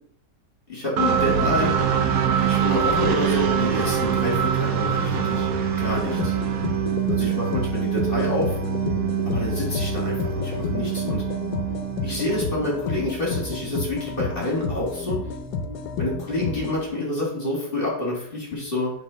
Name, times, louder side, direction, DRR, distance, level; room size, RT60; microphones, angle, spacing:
voice 1, 0.7-1.7 2.4-5.5 5.8-6.3 7.1-8.6 9.3-11.2 12.0-15.2 16.0-18.9, left 1 dB, 35° left, -5 dB, 2.8 m, -28 dB
sound 1, 1.0-12.7, right 7 dB, 80° right, 1.3 m, -24 dB
sound 2, 5.8-16.9, left 4 dB, 85° left, 1.4 m, -31 dB
8.3 x 3.8 x 5.1 m, 0.68 s
omnidirectional pair, 1.7 m